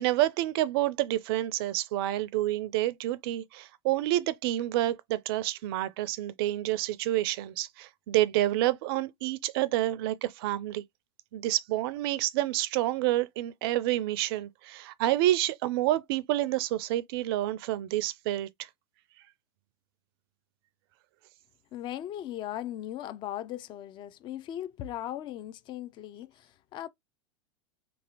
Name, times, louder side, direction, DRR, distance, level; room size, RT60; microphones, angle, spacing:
voice 1, 0.0-10.8 11.3-18.5, right 15 dB, 55° right, 0.4 m, -28 dB
voice 2, 21.7-26.9, left 12 dB, 30° left, 0.4 m, -38 dB
2.8 x 2.6 x 2.8 m
hypercardioid pair, 95°, 15 cm